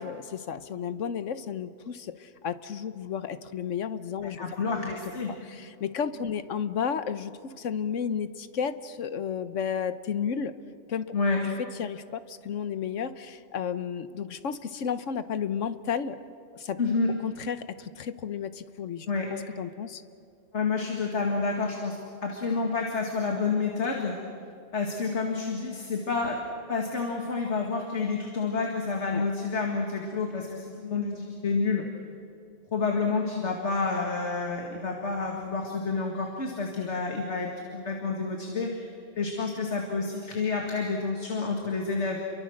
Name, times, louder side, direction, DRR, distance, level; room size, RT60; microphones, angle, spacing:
voice 1, 0.0-4.4 5.5-10.5 10.9-11.1 11.6-16.2 16.5-16.8 17.2-19.1 19.6-20.0 29.1-29.2 36.8-36.9, left 7 dB, 80° left, 12 dB, 1.3 m, -32 dB
voice 2, 4.2-5.3 11.1-11.4 16.8-17.1 19.1-19.3 20.5-24.2 24.7-31.8 32.7-38.9 39.2-42.2, left 4 dB, 65° left, 1 dB, 2.4 m, -29 dB
29.5 x 23.5 x 6.5 m, 2.5 s
omnidirectional pair, 1.3 m